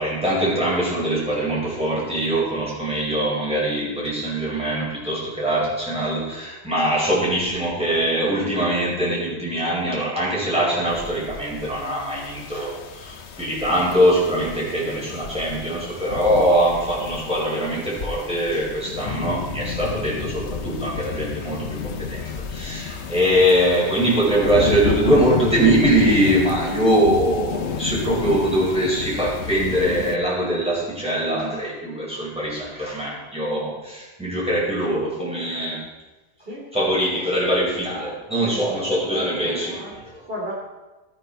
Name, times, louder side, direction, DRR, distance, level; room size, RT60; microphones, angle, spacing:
voice 1, 0.0-35.9 36.7-40.3, right 1 dB, 5° right, -6 dB, 5.9 m, -22 dB
sound 1, 10.9-30.2, left 6 dB, 80° left, 1.1 m, -31 dB
voice 2, 36.4-36.7 38.4-40.0 40.3-40.5, equal, 60° right, -4 dB, 3.5 m, -36 dB
18.0 x 9.8 x 4.5 m, 1.2 s
omnidirectional pair, 1.1 m